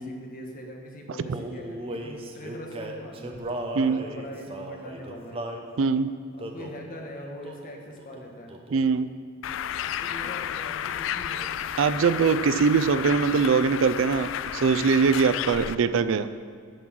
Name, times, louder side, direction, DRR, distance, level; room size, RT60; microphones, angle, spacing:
voice 1, 0.0-3.4 4.0-5.4 6.4-8.5 9.9-11.5, equal, 45° left, 1 dB, 1.4 m, -42 dB
Male singing, 1.3-5.7 6.4-6.8 7.4-7.7 8.0-8.9, right 1 dB, 30° right, 0.7 m, -36 dB
voice 2, 5.8-6.1 8.7-9.1 11.8-16.3, right 5 dB, 75° right, 12 dB, 0.4 m, -22 dB
Bird, 9.4-15.7, left 9 dB, 70° left, 0.3 m, -32 dB
9.2 x 6.0 x 6.3 m, 2.1 s
head